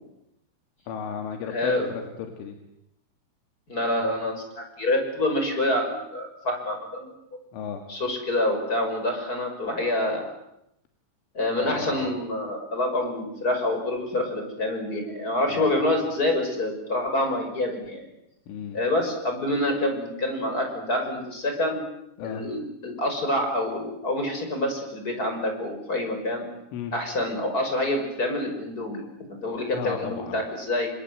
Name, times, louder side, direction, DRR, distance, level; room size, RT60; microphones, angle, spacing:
voice 1, 0.9-2.6 7.5-7.8 11.6-12.1 15.5-15.8 18.5-18.8 22.2-22.4 26.7-26.9 29.7-30.4, left 7 dB, 80° left, 4 dB, 4.6 m, -34 dB
voice 2, 1.5-1.9 3.7-7.1 7.9-10.3 11.3-18.1 18.7-21.8 22.2-26.5 26.9-29.0 29.3-30.9, left 1 dB, 20° left, 4 dB, 6.0 m, -27 dB
29.5 x 25.5 x 7.9 m, 0.80 s
omnidirectional pair, 5.6 m